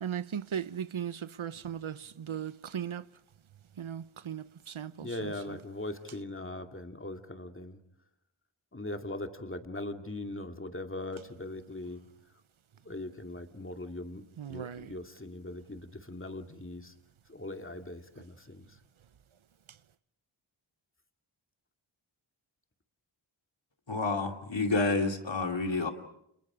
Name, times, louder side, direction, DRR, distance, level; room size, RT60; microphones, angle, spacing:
voice 1, 0.0-3.0 3.8-5.3 14.4-14.9, right 8 dB, 80° right, 0.9 m, -37 dB
voice 2, 5.0-7.8 8.7-12.0 12.9-14.2 14.5-16.9 17.3-18.6, left 2 dB, 25° left, 2.4 m, -40 dB
voice 3, 23.9-25.9, left 3 dB, 65° left, 2.8 m, -29 dB
30.0 x 28.0 x 5.0 m
wide cardioid pair, 60°, 48 cm